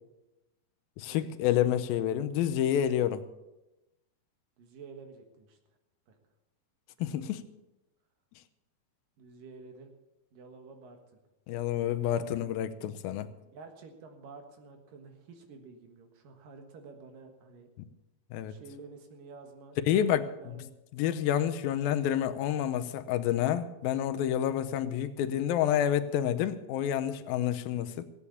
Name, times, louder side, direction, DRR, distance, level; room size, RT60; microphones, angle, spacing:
voice 1, 1.0-3.2 7.0-7.4 11.5-13.3 18.3-18.5 19.9-20.6 20.9-28.0, left 10 dB, 85° left, 10 dB, 2.5 m, -29 dB
voice 2, 4.6-5.6 6.1-6.2 7.0-7.4 9.2-9.9 10.3-11.2 12.1-12.5 13.4-17.7 18.5-20.7, right 4 dB, 70° right, 5 dB, 3.1 m, -50 dB
16.5 x 8.5 x 7.1 m, 0.98 s
omnidirectional pair, 4.2 m